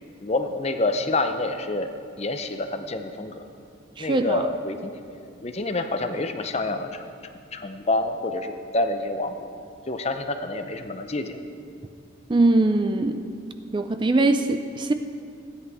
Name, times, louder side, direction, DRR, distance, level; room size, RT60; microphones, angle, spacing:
voice 1, 0.2-1.9 2.2-3.4 4.0-7.0 7.5-9.5 9.9-11.4, left 2 dB, 30° left, 7 dB, 0.6 m, -27 dB
voice 2, 4.0-4.5 12.3-13.3 13.7-14.9, right 2 dB, 25° right, 8 dB, 0.4 m, -21 dB
15.5 x 9.9 x 4.8 m, 2.4 s
head